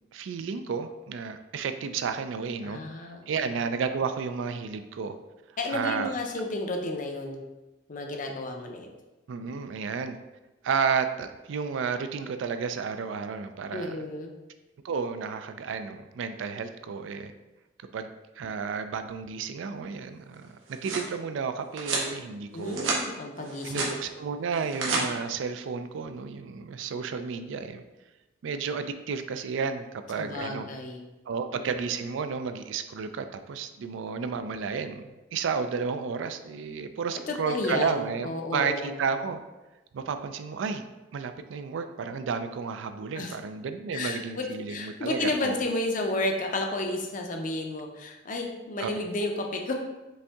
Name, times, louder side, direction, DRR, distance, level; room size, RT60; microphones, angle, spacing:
voice 1, 0.1-2.8 3.3-5.2 5.7-6.1 9.3-10.2 10.6-14.0 14.8-17.3 17.9-18.1 18.4-23.0 23.6-27.8 28.4-30.7 31.3-39.4 39.9-40.8 41.1-45.6 48.8-48.9, right 5 dB, 70° right, 9 dB, 0.3 m, -32 dB
voice 2, 2.6-3.5 5.6-7.4 7.9-8.9 13.7-14.3 22.5-23.9 30.2-31.1 31.5-31.7 37.3-39.0 43.1-43.3 43.9-49.7, left 2 dB, 40° left, 3 dB, 0.5 m, -32 dB
sound 1, 20.4-21.1 21.8-22.1 22.6-23.0 23.4-23.9 24.5-25.0, right 3 dB, 85° right, 1.0 m, -30 dB
5.4 x 2.6 x 3.5 m, 1.1 s
head